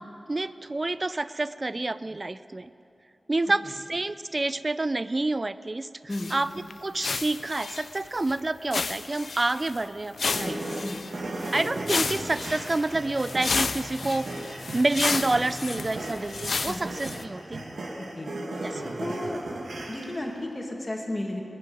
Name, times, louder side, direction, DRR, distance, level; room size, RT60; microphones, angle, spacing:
voice 1, 0.3-2.7 3.3-6.5 6.8-10.8 11.5-14.3 14.7-17.6 18.6-18.8, right 2 dB, 35° right, 15 dB, 0.4 m, -28 dB
sound 1, 6.1-6.4 6.7-6.8 7.0-8.3 8.7-9.8 10.1-17.2, left 4 dB, 75° left, 0.5 m, -32 dB
sound 2, 10.2-20.4, right 2 dB, 90° right, 1.8 m, -36 dB
voice 2, 10.4-11.0 16.6-16.8 18.0-18.3 18.6-19.4 19.9-21.4, left 1 dB, 30° left, 1 dB, 2.2 m, -34 dB
sound 3, 11.8-16.8, equal, 10° right, 3.1 m, -47 dB
20.0 x 7.5 x 9.3 m, 2.7 s
wide cardioid pair, 85°, 0 cm